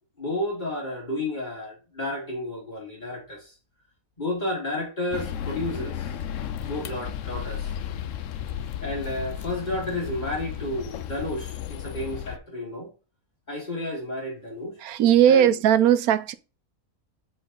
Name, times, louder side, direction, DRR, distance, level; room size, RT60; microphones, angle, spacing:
voice 1, 0.2-3.5 4.2-6.2 6.6-7.7 8.8-12.9 13.5-14.8 15.3-15.5, left 1 dB, 30° left, 2.0 m, -31 dB
sound 1, 5.1-12.4, left 9 dB, 70° left, 0.9 m, -34 dB
voice 2, 14.8-16.3, right 10 dB, 85° right, 1.1 m, -18 dB
7.9 x 3.8 x 3.7 m
omnidirectional pair, 1.5 m